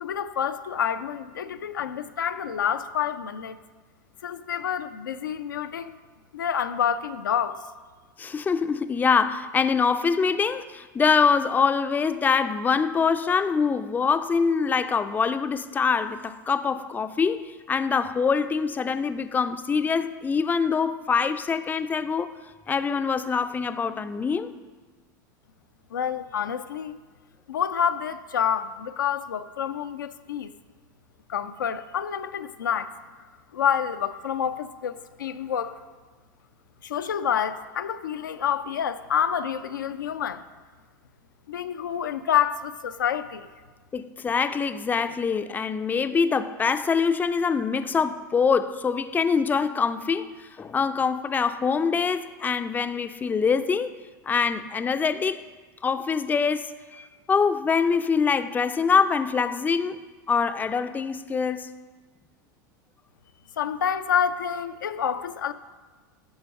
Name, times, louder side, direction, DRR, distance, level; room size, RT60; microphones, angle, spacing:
voice 1, 0.0-3.6 4.2-6.0 6.3-7.6 25.9-27.0 27.5-30.5 31.3-32.9 33.5-35.8 36.8-40.4 41.5-43.5 63.6-65.5, left 8 dB, 85° left, 0.4 m, -28 dB
voice 2, 8.2-22.3 22.7-24.5 43.9-53.9 54.3-55.4 55.8-60.0 60.3-61.7, left 5 dB, 15° left, 0.4 m, -24 dB
11.0 x 4.5 x 5.5 m
hypercardioid pair, 90°, 10 cm